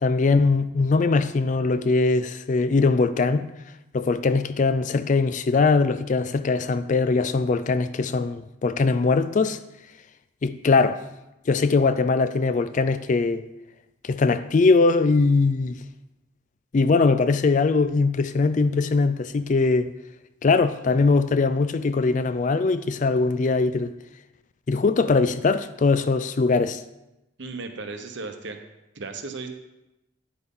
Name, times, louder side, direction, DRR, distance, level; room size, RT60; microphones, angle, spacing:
voice 1, 0.0-3.4 3.9-9.6 10.4-11.0 11.5-13.4 14.0-15.8 16.7-19.9 20.4-23.9 24.7-26.8, left 3 dB, 35° left, 0.3 m, -21 dB
voice 2, 27.4-28.6 28.9-29.5, right 3 dB, 55° right, 0.9 m, -35 dB
9.6 x 7.9 x 3.8 m
head